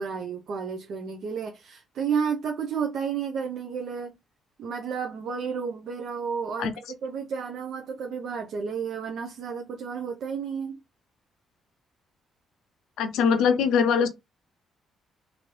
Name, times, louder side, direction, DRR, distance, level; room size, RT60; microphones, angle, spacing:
voice 1, 0.0-4.1 4.6-10.8, right 6 dB, 70° right, 0.6 m, -31 dB
voice 2, 13.0-14.1, left 6 dB, 85° left, 0.5 m, -22 dB
3.1 x 2.6 x 3.0 m
cardioid pair, 90°, 0 cm